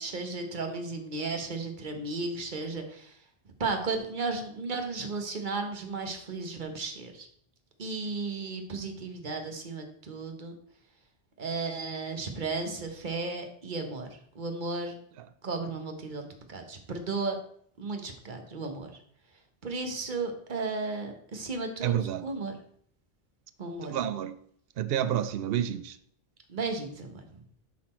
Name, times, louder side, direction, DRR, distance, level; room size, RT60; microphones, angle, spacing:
voice 1, 0.0-3.2 3.6-7.3 7.8-10.5 11.4-14.9 15.4-17.4 17.8-18.9 19.6-22.6 23.6-24.0 26.5-27.4, right 3 dB, 50° right, 1.3 m, -34 dB
voice 2, 21.8-22.3 23.8-24.4 24.8-26.0, right 10 dB, 75° right, 0.8 m, -29 dB
11.5 x 4.2 x 4.3 m
omnidirectional pair, 1.0 m